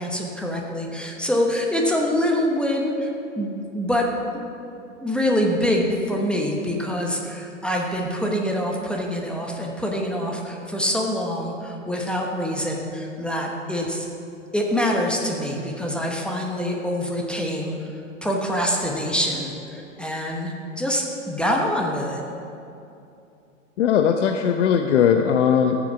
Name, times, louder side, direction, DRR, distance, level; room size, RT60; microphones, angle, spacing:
voice 1, 0.0-3.1 3.4-4.1 4.3-4.4 5.0-14.1 14.5-17.7 18.2-22.2, equal, ahead, -1 dB, 1.0 m, -25 dB
voice 2, 23.8-25.8, left 8 dB, 60° left, 5 dB, 0.8 m, -19 dB
14.0 x 7.2 x 5.9 m, 2.7 s
hypercardioid pair, 120°, 39 cm